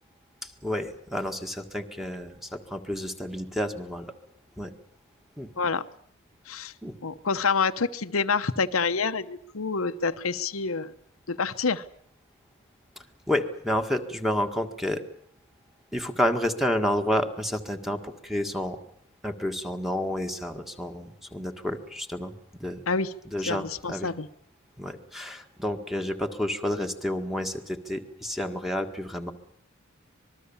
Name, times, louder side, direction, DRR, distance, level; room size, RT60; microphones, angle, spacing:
voice 1, 0.4-4.1 4.6-4.7 5.4-5.5 6.8-7.0 13.3-15.0 15.9-18.8 19.2-22.8 23.3-24.1 24.8-29.3, left 1 dB, ahead, 5 dB, 1.8 m, -30 dB
voice 2, 7.0-10.9 11.3-11.8 22.9-23.1 23.5-24.3, left 4 dB, 80° left, 9 dB, 1.0 m, -27 dB
26.0 x 20.5 x 7.2 m, 0.65 s
head